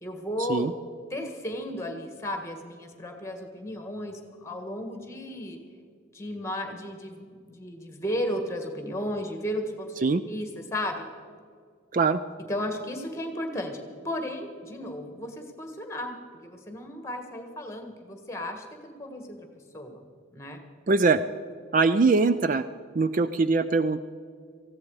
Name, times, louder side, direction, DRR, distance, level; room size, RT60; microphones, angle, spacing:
voice 1, 0.0-0.7 1.1-5.6 6.1-11.1 12.5-16.2 16.4-19.5 19.7-20.0 20.3-20.6, left 1 dB, 15° left, 5 dB, 1.6 m, -34 dB
voice 2, 20.9-21.2 21.7-22.6 22.9-24.0, right 4 dB, 40° right, 12 dB, 0.4 m, -22 dB
19.5 x 15.0 x 4.8 m, 2.1 s
head